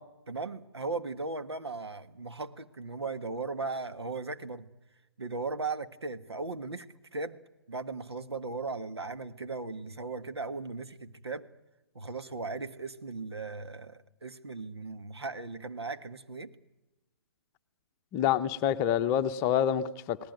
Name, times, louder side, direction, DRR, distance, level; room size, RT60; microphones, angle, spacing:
voice 1, 0.3-4.7 5.2-6.9 7.1-7.4 7.7-11.5 11.9-16.5, right 3 dB, 85° right, 1.6 m, -37 dB
voice 2, 18.1-20.2, left 10 dB, 25° left, 0.9 m, -27 dB
29.5 x 18.5 x 9.3 m
figure-of-eight pair, 135°, 13 cm